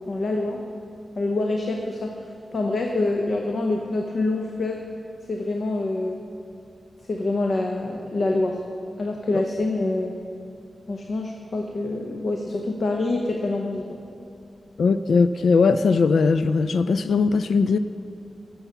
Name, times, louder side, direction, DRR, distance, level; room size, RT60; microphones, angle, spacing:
voice 1, 0.1-0.6 1.2-4.8 5.3-6.2 7.1-8.6 9.0-10.2 10.9-14.0, left 2 dB, 50° left, 2 dB, 0.8 m, -26 dB
voice 2, 14.8-17.8, left 4 dB, 85° left, 12 dB, 0.3 m, -19 dB
15.0 x 7.2 x 5.6 m, 2.7 s
wide cardioid pair, 155°, 0 cm